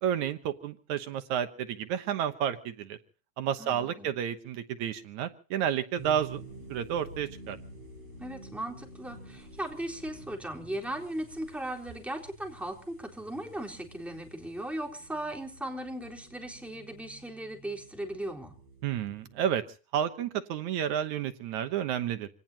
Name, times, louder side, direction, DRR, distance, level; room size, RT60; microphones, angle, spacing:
voice 1, 0.0-3.0 3.4-6.4 6.7-7.6 18.8-19.6 19.9-22.3, right 9 dB, 80° right, 9 dB, 2.5 m, -31 dB
voice 2, 3.6-4.1 8.2-18.5, right 1 dB, ahead, 1 dB, 3.5 m, -37 dB
sound 1, 6.0-19.5, right 2 dB, 60° right, 7.7 m, -50 dB
27.0 x 18.0 x 2.9 m, 0.37 s
omnidirectional pair, 3.4 m